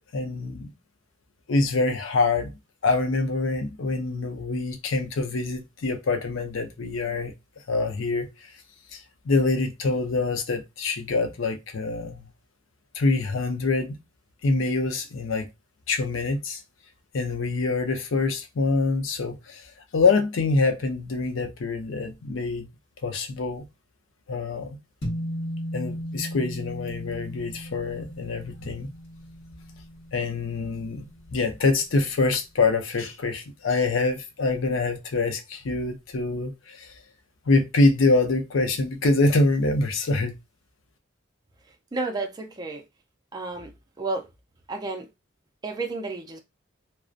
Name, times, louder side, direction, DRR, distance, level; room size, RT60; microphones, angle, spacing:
voice 1, 0.1-0.7 1.5-2.5 2.8-7.3 7.7-8.5 8.9-12.3 12.9-14.0 14.4-15.5 15.9-16.6 17.1-22.7 23.0-23.7 24.3-24.8 25.7-28.9 30.1-31.1 31.3-37.0 37.5-40.4, left 3 dB, 80° left, 0.5 m, -25 dB
sound 1, 25.0-31.6, equal, 60° left, 1.0 m, -36 dB
voice 2, 41.9-42.8 43.3-43.7 44.0-44.2 44.7-45.1 45.6-46.4, right 3 dB, 20° right, 0.4 m, -31 dB
2.5 x 2.0 x 2.4 m
head